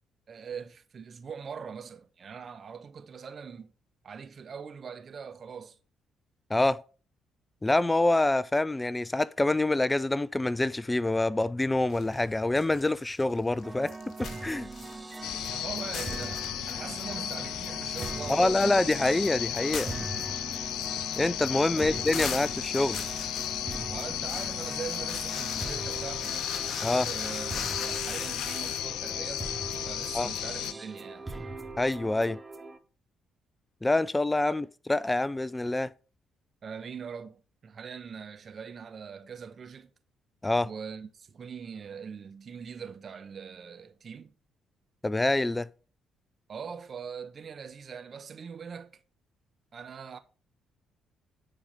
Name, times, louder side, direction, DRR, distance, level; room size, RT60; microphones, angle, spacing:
voice 1, 0.3-3.7 4.0-5.8 15.5-19.0 21.8-22.5 23.9-26.5 27.0-29.5 29.8-31.3 36.6-39.9 40.6-44.3 46.5-49.0 49.7-50.2, right 6 dB, 50° right, 1.1 m, -42 dB
voice 2, 7.6-13.9 14.2-14.7 18.3-19.9 21.2-23.0 26.8-27.1 30.1-30.3 31.8-32.4 33.8-35.9 40.4-40.7 45.0-45.7, left 2 dB, 20° left, 0.4 m, -26 dB
sound 1, 11.9-12.8 13.1-15.6 15.8-16.8 17.1-17.2 17.6-28.9, left 6 dB, 55° left, 1.7 m, -41 dB
sound 2, 13.6-32.8, right 3 dB, 25° right, 1.1 m, -41 dB
sound 3, 15.2-30.7, left 12 dB, 70° left, 0.5 m, -34 dB
10.0 x 4.8 x 5.2 m
hypercardioid pair, 45°, 0 cm